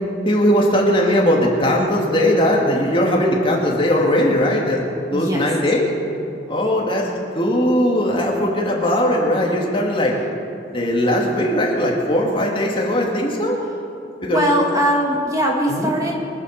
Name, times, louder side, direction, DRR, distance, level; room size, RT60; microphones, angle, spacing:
voice 1, 0.2-5.9 6.5-7.1 7.3-10.2 10.7-13.6 14.2-14.4 15.7-15.9, left 1 dB, 30° left, -2 dB, 2.4 m, -19 dB
voice 2, 5.1-5.5 14.3-16.1, equal, 20° right, -1 dB, 1.8 m, -20 dB
24.0 x 8.2 x 6.7 m, 2.8 s
head